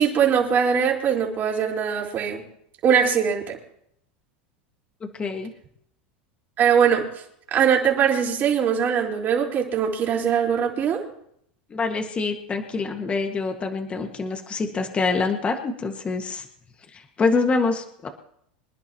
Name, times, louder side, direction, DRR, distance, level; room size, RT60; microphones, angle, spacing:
voice 1, 0.0-2.4 2.8-3.6 6.6-7.0 7.5-11.0, right 7 dB, 35° right, -1 dB, 4.3 m, -21 dB
voice 2, 5.0-5.5 11.7-16.5 16.9-18.1, left 4 dB, 20° left, 4 dB, 1.8 m, -26 dB
26.0 x 11.0 x 3.0 m, 0.71 s
supercardioid pair, 120°, 5 cm